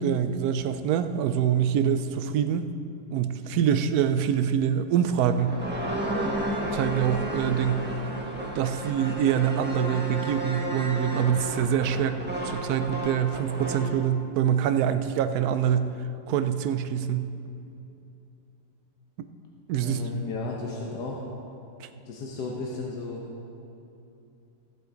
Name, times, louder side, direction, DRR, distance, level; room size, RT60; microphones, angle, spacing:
voice 1, 0.0-2.6 3.1-5.6 6.7-7.9 8.6-15.9 16.3-17.3 19.7-20.0 21.8-21.9, right 9 dB, 70° right, 10 dB, 1.0 m, -25 dB
sound 1, 5.1-13.9, right 1 dB, 5° right, 1.2 m, -32 dB
voice 2, 19.8-21.2 22.1-23.2, left 3 dB, 85° left, -1 dB, 1.6 m, -34 dB
16.0 x 7.9 x 3.9 m, 2.7 s
omnidirectional pair, 1.8 m